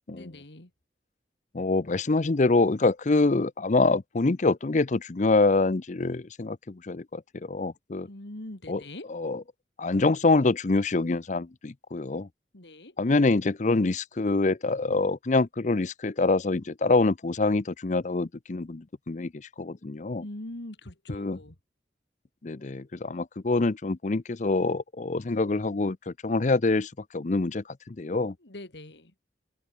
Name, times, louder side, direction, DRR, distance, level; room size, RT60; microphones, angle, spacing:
voice 1, 0.1-0.7 8.1-9.1 12.5-13.0 20.2-21.6 28.4-29.1, left 1 dB, 80° left, 2.5 m, -42 dB
voice 2, 1.5-8.1 8.7-8.8 9.1-9.4 9.8-12.3 13.0-19.3 19.6-20.2 21.1-21.4 22.4-28.3, left 3 dB, 45° left, 0.6 m, -25 dB
open air
head